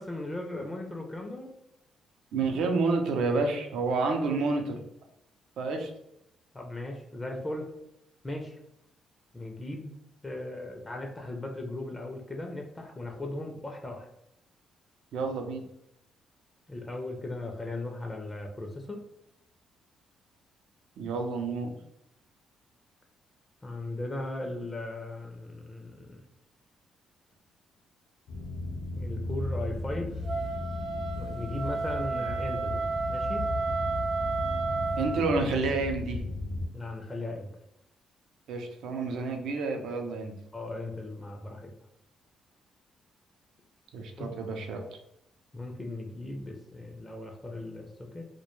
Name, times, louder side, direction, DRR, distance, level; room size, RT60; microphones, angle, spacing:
voice 1, 0.0-1.5 6.5-7.7 8.2-8.6 9.3-9.9 10.2-14.1 16.7-19.0 23.6-26.2 28.9-30.2 31.2-32.8 33.1-33.5 36.7-37.5 40.5-41.7 44.2-44.3 45.5-48.3, left 2 dB, 20° left, 2 dB, 0.4 m, -37 dB
voice 2, 2.3-4.8 5.6-5.9 15.1-15.6 21.0-21.7 35.0-36.2 38.5-40.3 43.9-44.8, right 3 dB, 75° right, 3 dB, 0.4 m, -29 dB
sound 1, 28.3-36.7, left 2 dB, 70° left, 0.6 m, -35 dB
Wind instrument woodwind instrument, 30.2-35.3, right 4 dB, 60° right, 0.8 m, -32 dB
2.2 x 2.1 x 2.9 m, 0.80 s
cardioid pair, 90°, 0 cm